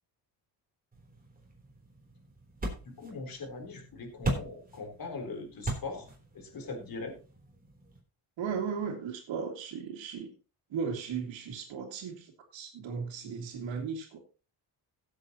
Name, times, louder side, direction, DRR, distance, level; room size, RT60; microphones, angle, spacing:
sound 1, 0.9-8.0, right 2 dB, 20° right, 3.6 m, -40 dB
voice 1, 2.8-6.1 6.3-7.1, left 3 dB, 50° left, 2 dB, 3.9 m, -40 dB
voice 2, 8.4-10.3 10.7-14.2, right 6 dB, 75° right, -4 dB, 2.5 m, -36 dB
16.5 x 8.0 x 3.0 m, 0.34 s
cardioid pair, 110°, 44 cm